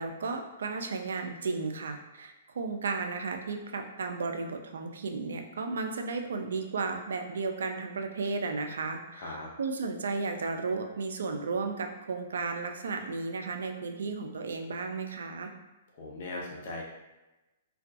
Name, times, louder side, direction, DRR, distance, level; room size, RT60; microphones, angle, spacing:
voice 1, 0.0-15.5, right 4 dB, 80° right, 5 dB, 0.3 m, -34 dB
voice 2, 9.2-9.5 15.9-16.8, left 2 dB, 55° left, -2 dB, 0.6 m, -39 dB
2.3 x 2.2 x 2.5 m, 1.0 s
hypercardioid pair, 130°, 0 cm